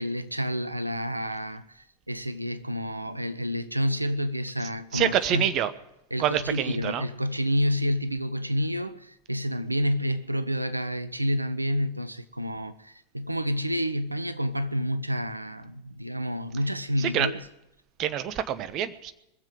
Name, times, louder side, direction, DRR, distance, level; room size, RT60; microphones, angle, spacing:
voice 1, 0.0-5.5 6.1-17.4, equal, 85° right, 0.8 m, -29 dB
voice 2, 4.9-5.7 6.2-7.0 17.0-17.3 18.0-19.1, right 10 dB, 35° right, 1.1 m, -26 dB
22.0 x 7.6 x 7.9 m
figure-of-eight pair, 90°, 0 cm